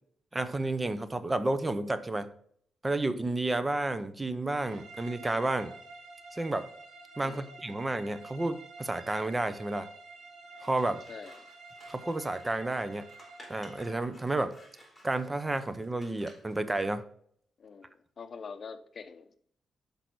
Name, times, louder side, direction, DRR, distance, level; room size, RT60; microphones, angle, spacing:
voice 1, 0.3-2.3 2.8-5.7 6.3-6.7 7.2-9.9 10.6-11.0 11.9-13.0 13.5-14.5 15.0-17.0, right 2 dB, 25° right, 12 dB, 0.6 m, -31 dB
sound 1, 4.6-14.1, right 3 dB, 75° right, 1.6 m, -49 dB
Scissors, 10.5-16.6, left 1 dB, 10° left, 3.4 m, -56 dB
voice 2, 11.1-11.5 17.6-19.4, left 5 dB, 55° left, 10 dB, 0.6 m, -45 dB
5.8 x 5.3 x 4.6 m, 0.62 s
cardioid pair, 65°, 0 cm